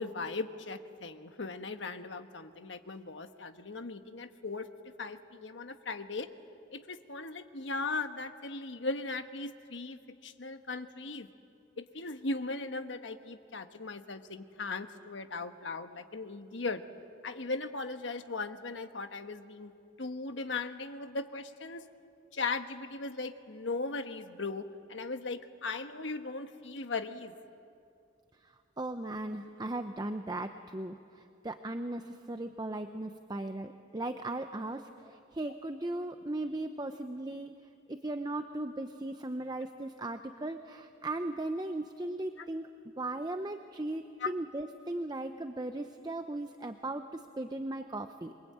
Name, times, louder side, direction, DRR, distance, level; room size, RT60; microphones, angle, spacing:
voice 1, 0.0-4.7 5.0-6.3 6.7-11.3 11.8-16.8 17.2-19.7 20.0-21.9 22.3-27.3 44.2-44.3, left 3 dB, 75° left, 8 dB, 1.3 m, -38 dB
voice 2, 28.4-37.5 37.9-42.7 43.0-48.3, right 2 dB, 20° right, 7 dB, 0.7 m, -37 dB
27.0 x 23.5 x 8.7 m, 2.5 s
head